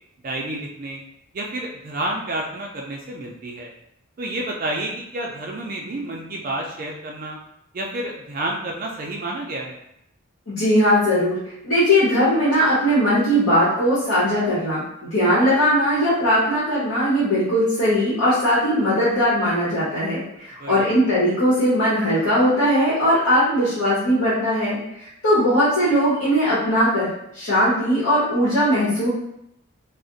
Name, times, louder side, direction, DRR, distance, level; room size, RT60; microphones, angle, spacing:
voice 1, 0.2-1.0 1.3-3.7 4.2-7.4 7.7-9.8 20.6-20.9, right 1 dB, 40° right, 0 dB, 0.4 m, -30 dB
voice 2, 10.5-11.4 11.6-27.1 27.3-29.1, equal, 80° left, -10 dB, 1.0 m, -19 dB
2.4 x 2.1 x 3.8 m, 0.79 s
head